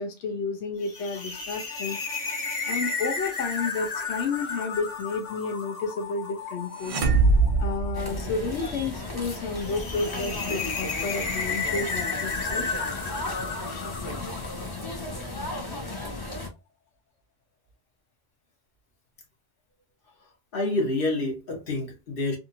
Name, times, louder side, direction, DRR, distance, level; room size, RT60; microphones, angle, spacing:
voice 1, 0.0-2.0 2.7-7.0 7.6-12.7, left 4 dB, 65° left, 0.9 m, -31 dB
sound 1, 0.8-15.2, left 4 dB, 85° left, 1.2 m, -34 dB
sound 2, 6.8-8.8, right 3 dB, 60° right, 0.3 m, -23 dB
sound 3, 7.9-16.5, left 2 dB, 25° left, 0.6 m, -35 dB
voice 2, 20.5-22.4, left 2 dB, 50° left, 1.1 m, -27 dB
2.7 x 2.6 x 2.7 m
omnidirectional pair, 1.3 m